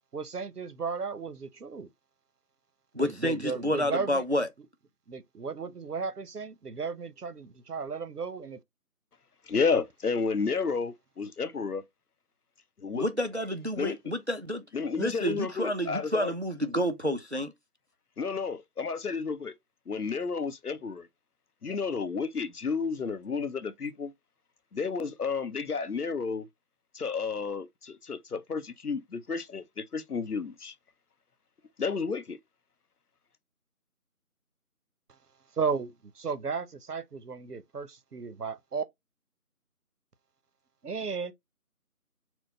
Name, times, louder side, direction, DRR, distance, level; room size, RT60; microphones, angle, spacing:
voice 1, 0.1-1.9 3.0-4.2 5.1-8.6 35.5-38.8 40.8-41.3, right 5 dB, 85° right, 0.8 m, -34 dB
voice 2, 2.9-4.5 13.0-14.6 15.0-17.5, equal, 50° right, 0.4 m, -29 dB
voice 3, 9.5-11.8 12.8-13.1 13.8-14.0 14.7-16.3 18.2-19.5 19.9-21.1 21.6-24.1 24.7-26.5 26.9-30.7 31.8-32.4, left 5 dB, 80° left, 0.7 m, -31 dB
4.5 x 2.2 x 3.9 m
figure-of-eight pair, 165°, 45 cm